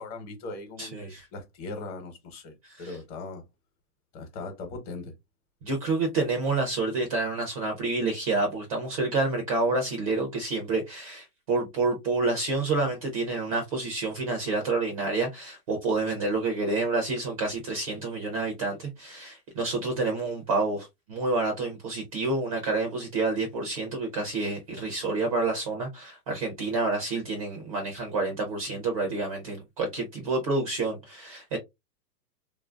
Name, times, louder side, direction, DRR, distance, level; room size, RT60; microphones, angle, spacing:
voice 1, 0.0-2.5 2.8-3.4 4.1-5.1, left 3 dB, 40° left, 1.0 m, -39 dB
voice 2, 0.8-1.3 2.6-3.0 5.6-31.6, right 3 dB, 25° right, 0.3 m, -28 dB
3.0 x 2.5 x 2.2 m
hypercardioid pair, 130°, 49 cm